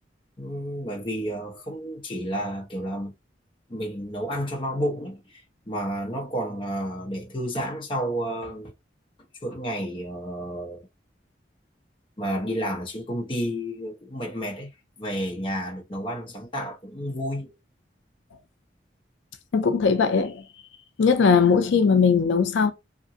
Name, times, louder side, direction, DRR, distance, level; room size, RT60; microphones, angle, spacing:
voice 1, 0.4-3.1 3.7-8.7 9.4-10.9 12.2-14.7 15.0-17.6, equal, 30° left, 0.7 m, -31 dB
voice 2, 19.5-20.5 21.0-22.7, left 5 dB, 85° left, 0.4 m, -19 dB
2.8 x 2.6 x 2.6 m
head